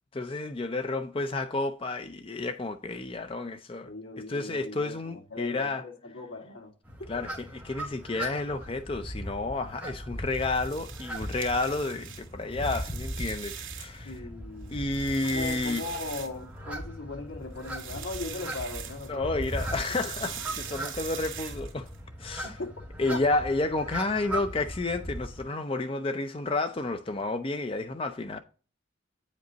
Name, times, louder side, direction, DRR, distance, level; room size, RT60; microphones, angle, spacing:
voice 1, 0.1-3.9 4.3-5.8 7.1-7.3 7.6-14.2 14.7-15.8 19.1-21.9 22.2-22.6 23.0-28.4, left 2 dB, 25° left, 0.5 m, -31 dB
voice 2, 3.8-6.7 7.0-7.3 14.0-14.9 15.2-19.5 20.0-20.1 22.4-22.7 23.1-23.4, left 3 dB, 75° left, 2.0 m, -39 dB
sound 1, 6.8-25.4, right 1 dB, 5° right, 2.4 m, -39 dB
sound 2, 10.3-14.1 14.5-16.8 17.5-19.1 19.4-22.0, right 8 dB, 90° right, 2.3 m, -41 dB
9.2 x 5.2 x 3.9 m
head